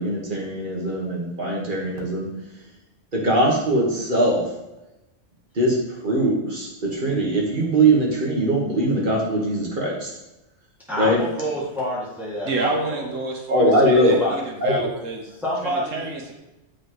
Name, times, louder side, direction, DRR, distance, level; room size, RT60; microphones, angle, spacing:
voice 1, 0.0-2.3 3.1-4.4 5.6-5.8 6.0-10.1 11.0-11.2 13.5-14.2 14.6-14.9, right 1 dB, 40° right, -2 dB, 1.9 m, -21 dB
voice 2, 10.9-13.1 13.7-14.4 15.4-16.1, equal, ahead, -8 dB, 2.4 m, -28 dB
voice 3, 12.4-15.3 15.6-16.3, right 2 dB, 85° right, 1 dB, 1.6 m, -28 dB
7.4 x 6.3 x 3.2 m, 0.97 s
omnidirectional pair, 1.3 m